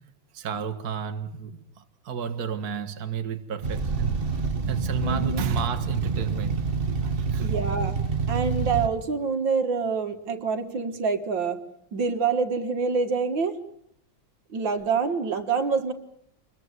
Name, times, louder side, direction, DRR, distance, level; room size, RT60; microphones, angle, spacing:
voice 1, 0.3-1.6 2.1-4.3 4.7-6.7 7.0-7.5, right 6 dB, 50° right, 7 dB, 1.9 m, -32 dB
sound 1, 3.6-8.9, right 5 dB, 30° right, 1.3 m, -27 dB
voice 2, 5.0-5.4 7.4-8.0 8.3-11.6 11.9-13.6 14.5-15.9, right 5 dB, 65° right, 8 dB, 2.3 m, -26 dB
26.0 x 22.0 x 8.1 m, 0.72 s
omnidirectional pair, 2.2 m